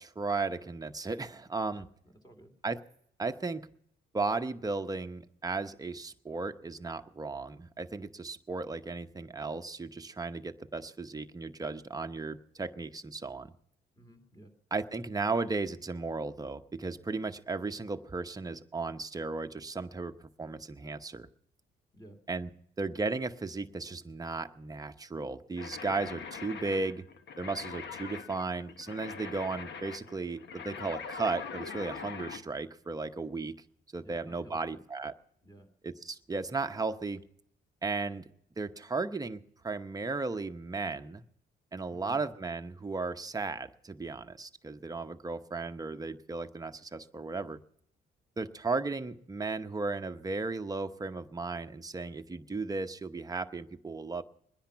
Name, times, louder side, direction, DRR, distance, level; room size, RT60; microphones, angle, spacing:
voice 1, 0.0-1.9 2.6-2.8 3.2-3.6 4.1-13.5 14.7-21.3 22.3-22.5 22.8-27.0 27.4-33.5 33.9-35.2 35.8-37.2 37.8-38.2 38.6-39.4 39.6-41.2 41.7-47.6 48.4-54.2, right 3 dB, 20° right, 8 dB, 0.8 m, -35 dB
voice 2, 1.7-2.5 14.0-14.5 21.9-22.2 26.7-26.9 34.0-34.8 35.4-35.7 41.9-42.2, right 1 dB, 20° left, 5 dB, 2.8 m, -54 dB
sound 1, 25.6-32.4, left 6 dB, 60° left, 1.3 m, -43 dB
22.0 x 10.0 x 5.7 m, 0.69 s
cardioid pair, 90°, 20 cm